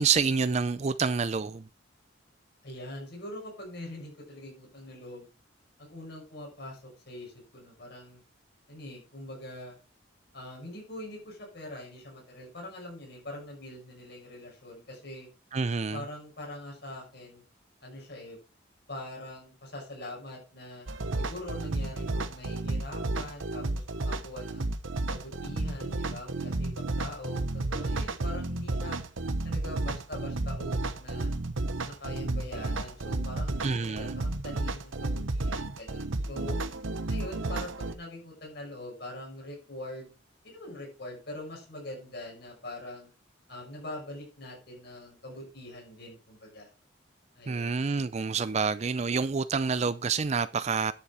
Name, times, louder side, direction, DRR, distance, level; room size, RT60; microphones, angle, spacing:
voice 1, 0.0-1.7 15.5-16.0 33.6-34.2 47.5-50.9, right 5 dB, 35° right, 0.4 m, -28 dB
voice 2, 2.6-5.3 5.8-8.2 8.7-9.8 10.3-15.3 15.9-17.4 17.8-18.4 18.9-20.9 21.2-24.7 25.1-29.0 29.4-31.3 31.8-36.6 37.1-40.1 40.4-43.1 43.5-46.7 47.3-47.8, left 1 dB, 55° left, 6.1 m, -43 dB
sound 1, 20.9-37.9, right 2 dB, 85° right, 1.0 m, -32 dB
11.0 x 7.1 x 4.8 m
head